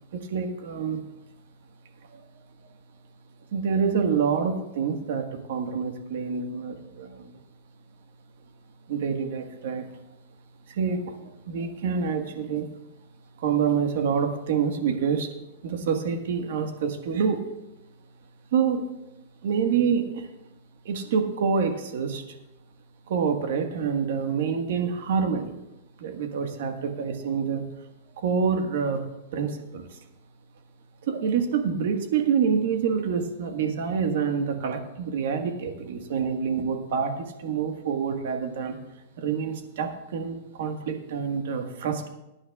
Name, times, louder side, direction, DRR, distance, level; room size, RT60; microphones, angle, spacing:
voice 1, 0.1-1.0 2.1-2.2 3.5-7.3 8.9-9.9 10.7-12.7 13.4-15.3 15.6-17.4 18.5-18.8 19.4-20.3 20.8-22.2 23.1-25.5 26.0-27.6 28.2-29.0 29.3-29.9 31.0-38.8 39.2-42.1, right 6 dB, 70° right, 5 dB, 1.5 m, -27 dB
20.5 x 9.8 x 2.4 m, 0.94 s
supercardioid pair, 155°, 0 cm